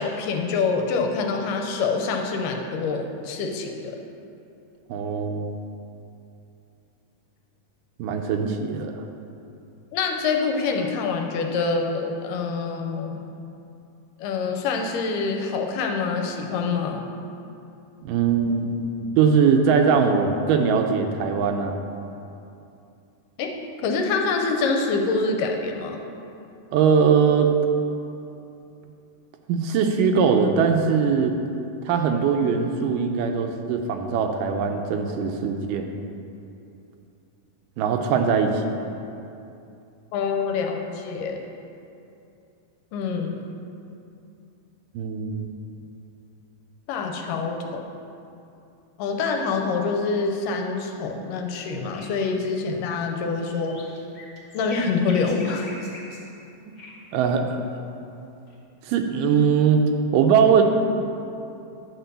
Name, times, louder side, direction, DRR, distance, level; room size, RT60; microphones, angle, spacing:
voice 1, 0.0-4.0 9.9-13.2 14.2-17.0 23.4-23.6 23.8-26.0 40.1-41.4 42.9-43.4 46.9-47.8 49.0-53.8 54.5-55.7, left 4 dB, 80° left, 3 dB, 2.3 m, -26 dB
voice 2, 4.9-5.6 8.0-9.0 18.0-21.8 26.7-27.5 29.5-31.4 31.9-35.9 37.8-38.6 45.0-45.5 57.1-57.7 58.9-59.8 60.1-60.6, right 6 dB, 80° right, 4 dB, 2.2 m, -21 dB
sound 1, 51.3-51.4 51.6-51.7 51.9-52.4 52.9-56.3 56.8-57.0 58.5-58.6, left 1 dB, 35° left, 2.0 m, -43 dB
10.5 x 4.4 x 6.8 m, 2.7 s
omnidirectional pair, 3.9 m